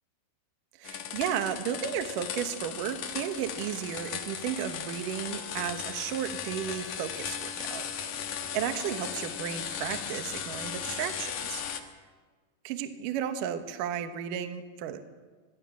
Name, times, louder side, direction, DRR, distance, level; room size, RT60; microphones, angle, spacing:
sound 1, 0.8-11.8, left 8 dB, 85° left, 1.7 m, -37 dB
voice 1, 0.8-11.6 12.6-15.0, right 9 dB, 90° right, 7 dB, 1.9 m, -34 dB
24.0 x 20.5 x 6.2 m, 1.5 s
omnidirectional pair, 5.9 m